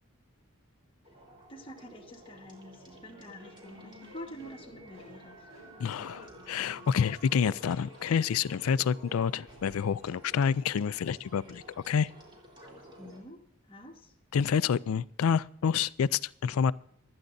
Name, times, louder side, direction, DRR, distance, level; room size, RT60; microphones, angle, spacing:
sound 1, 1.0-13.2, equal, 20° right, 3.8 m, -52 dB
voice 1, 1.5-5.4 13.0-13.4 13.7-14.1, equal, 25° left, 1 dB, 1.5 m, -47 dB
sound 2, 3.6-9.6, equal, 70° right, 5.5 m, -53 dB
voice 2, 5.8-12.1 14.3-16.7, left 7 dB, 80° left, 19 dB, 0.4 m, -28 dB
27.5 x 9.8 x 2.6 m, 0.71 s
head